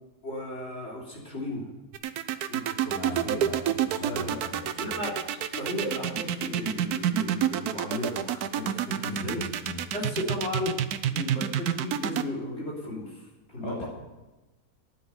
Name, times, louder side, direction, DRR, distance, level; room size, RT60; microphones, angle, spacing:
voice 1, 0.2-1.7 2.5-3.4 4.0-4.5 4.8-5.2 5.5-9.4 9.9-10.7 11.1-13.2 13.5-13.9, left 1 dB, 45° left, -3 dB, 3.5 m, -35 dB
sound 1, 1.9-12.2, right 10 dB, 85° right, 1.2 m, -28 dB
voice 2, 2.8-4.9 9.1-9.8 13.6-13.9, left 1 dB, 15° left, -2 dB, 2.2 m, -39 dB
10.0 x 9.8 x 9.0 m, 1.1 s
omnidirectional pair, 1.6 m